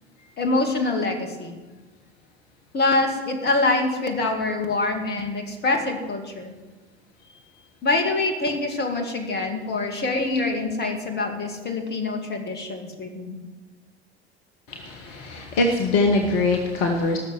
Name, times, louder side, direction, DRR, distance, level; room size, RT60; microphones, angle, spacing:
voice 1, 0.4-1.6 2.7-6.5 7.8-13.4, left 2 dB, 30° left, 4 dB, 2.3 m, -25 dB
voice 2, 14.7-17.2, left 2 dB, 55° left, 3 dB, 1.6 m, -22 dB
17.5 x 6.7 x 8.1 m, 1.3 s
figure-of-eight pair, 70°, 32 cm